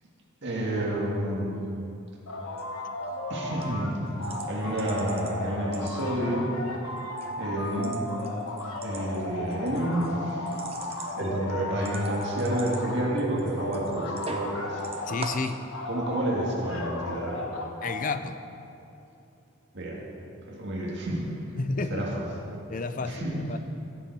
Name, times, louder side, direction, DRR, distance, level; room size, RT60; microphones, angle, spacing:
voice 1, 0.4-1.6 3.3-3.9 4.5-6.6 7.3-8.0 8.8-10.6 11.0-14.8 15.9-17.5 19.7-20.0 20.5-21.2 21.9-22.2 23.0-23.5, right 1 dB, 55° right, -2 dB, 2.0 m, -29 dB
sound 1, 2.3-3.9 4.2-13.1 13.5-15.3 15.7-18.0, left 2 dB, 80° left, 1.2 m, -35 dB
sound 2, 2.5-2.6 3.0-3.3 3.6-3.7 4.2-5.3 5.6-6.4 6.8-7.3 7.6-14.5 14.8-15.6, right 3 dB, 30° right, 0.7 m, -42 dB
voice 2, 15.1-15.6 17.8-18.4 21.6-22.1 22.7-23.6, left 3 dB, 40° left, 10 dB, 0.5 m, -31 dB
16.0 x 7.0 x 4.7 m, 2.8 s
head